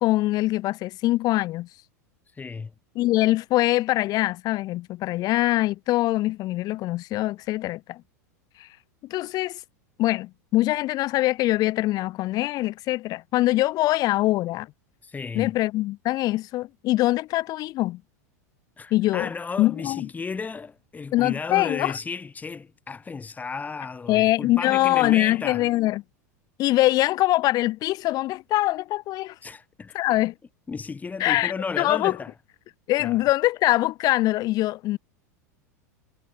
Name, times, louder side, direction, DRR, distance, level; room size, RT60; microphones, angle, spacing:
voice 1, 0.0-1.7 2.9-8.0 8.6-8.7 9.1-9.6 10.0-14.7 15.3-18.0 18.9-19.3 19.6-20.1 21.1-21.9 24.1-26.0 26.6-29.3 29.9-30.3 31.2-32.2 32.9-35.0, left 17 dB, 45° left, 1.3 m, -23 dB
voice 2, 2.3-2.7 15.0-15.5 18.8-25.6 29.4-30.0 30.7-32.3 33.0-33.2, left 4 dB, 15° left, 5.9 m, -34 dB
hypercardioid pair, 100°, 9 cm